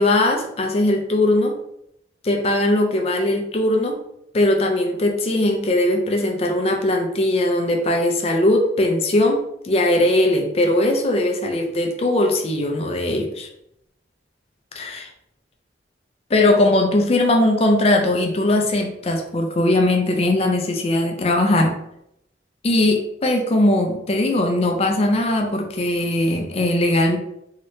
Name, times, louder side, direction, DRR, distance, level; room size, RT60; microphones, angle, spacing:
voice 1, 0.0-1.5 2.2-4.0 4.3-13.5 14.8-15.1 16.3-21.7 22.6-27.2, left 1 dB, 35° left, 2 dB, 0.4 m, -19 dB
2.8 x 2.7 x 3.1 m, 0.78 s
head